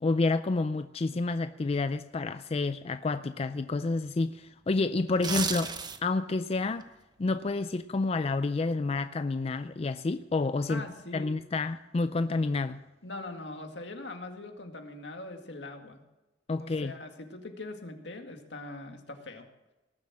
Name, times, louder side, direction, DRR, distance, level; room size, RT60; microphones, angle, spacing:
voice 1, 0.0-5.7 6.0-6.9 7.2-10.8 11.1-12.8 16.5-16.9, left 3 dB, 35° left, 11 dB, 0.4 m, -29 dB
sound 1, 5.1-6.2 6.6-6.8, right 5 dB, 25° right, 0.9 m, -32 dB
voice 2, 10.7-11.4 13.0-16.0 16.6-19.5, left 2 dB, 80° left, 4 dB, 2.1 m, -42 dB
19.0 x 7.5 x 7.4 m, 1.0 s
head